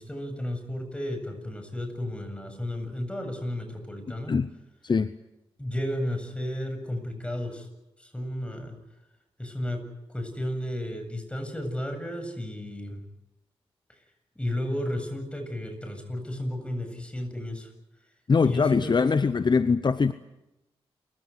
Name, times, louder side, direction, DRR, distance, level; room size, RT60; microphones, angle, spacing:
voice 1, 0.0-4.4 5.6-7.7 8.0-8.8 9.4-9.8 10.1-13.0 13.9-14.0 14.4-17.7 18.4-19.0, left 1 dB, 10° left, 6 dB, 7.9 m, -33 dB
voice 2, 18.3-20.1, left 5 dB, 45° left, 14 dB, 0.8 m, -22 dB
28.0 x 16.0 x 9.5 m, 0.95 s
cardioid pair, 50°, 11 cm